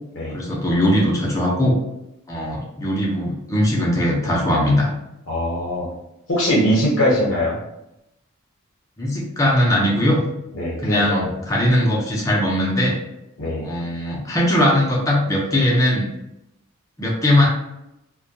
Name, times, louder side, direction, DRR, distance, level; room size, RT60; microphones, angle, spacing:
voice 1, 0.3-1.8 2.3-4.9 9.0-10.2 10.8-13.0 13.6-16.1 17.0-17.5, left 1 dB, 15° left, -3 dB, 0.5 m, -19 dB
voice 2, 5.3-5.9 6.3-7.6 10.5-11.3 13.4-13.7, equal, 60° left, -5 dB, 0.7 m, -21 dB
2.2 x 2.1 x 2.7 m, 0.87 s
head